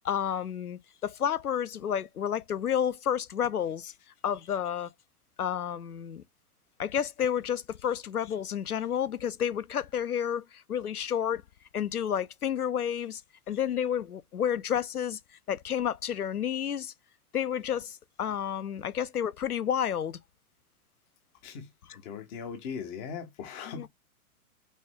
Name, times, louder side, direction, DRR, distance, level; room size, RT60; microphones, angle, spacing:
voice 1, 0.0-3.9 4.2-4.9 5.4-6.2 6.8-11.4 11.7-13.2 13.5-15.2 15.5-16.9 17.3-20.2 23.7-23.9, left 9 dB, 85° left, 0.6 m, -30 dB
voice 2, 22.0-23.9, left 6 dB, 15° left, 0.4 m, -39 dB
5.2 x 2.4 x 3.4 m
figure-of-eight pair, 110°, 44 cm